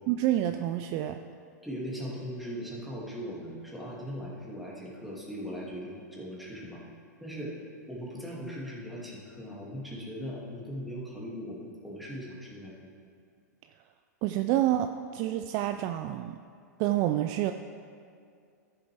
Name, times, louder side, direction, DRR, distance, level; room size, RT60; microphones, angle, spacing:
voice 1, 0.1-1.2 14.2-16.4 16.8-17.5, right 13 dB, 40° right, 8 dB, 0.3 m, -28 dB
voice 2, 1.6-6.8 7.2-7.6 7.9-12.9, equal, ahead, -6 dB, 2.3 m, -39 dB
13.5 x 6.8 x 3.4 m, 2.3 s
hypercardioid pair, 105°, 9 cm